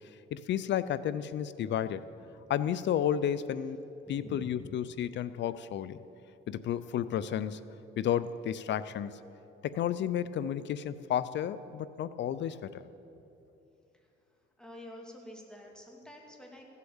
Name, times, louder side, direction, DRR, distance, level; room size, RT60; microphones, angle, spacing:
voice 1, 0.3-2.0 2.5-3.8 4.1-6.0 6.5-7.6 8.0-9.2 9.6-12.9, left 10 dB, 65° left, 15 dB, 0.5 m, -32 dB
voice 2, 4.0-4.7 13.9-14.1 14.6-16.6, left 1 dB, 5° left, 1 dB, 2.4 m, -48 dB
15.5 x 8.3 x 7.1 m, 2.8 s
cardioid pair, 90°, 20 cm